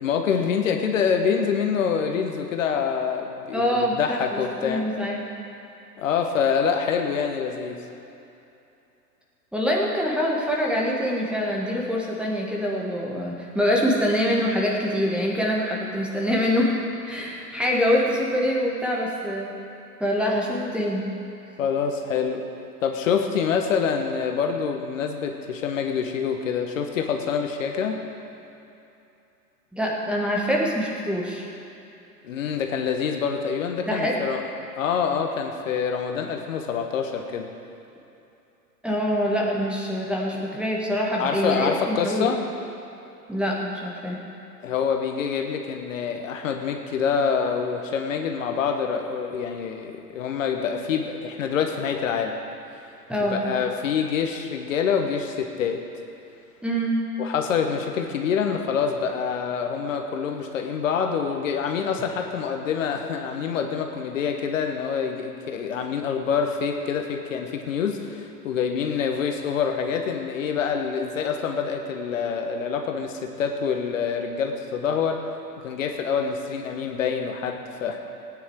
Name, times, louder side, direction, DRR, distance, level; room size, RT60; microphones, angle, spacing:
voice 1, 0.0-4.8 6.0-7.8 21.6-22.4 22.8-28.0 32.2-34.4 34.8-37.5 41.2-42.4 44.6-52.3 53.2-55.8 57.2-75.2 75.6-78.0, left 6 dB, 50° left, 4 dB, 1.4 m, -26 dB
voice 2, 3.5-5.2 9.5-16.7 17.1-19.6 20.0-21.1 29.7-31.5 33.9-34.2 38.8-42.3 43.3-44.2 53.1-53.5 56.6-57.0, equal, ahead, -3 dB, 1.5 m, -25 dB
18.5 x 9.5 x 4.7 m, 2.8 s
figure-of-eight pair, 110°, 50 cm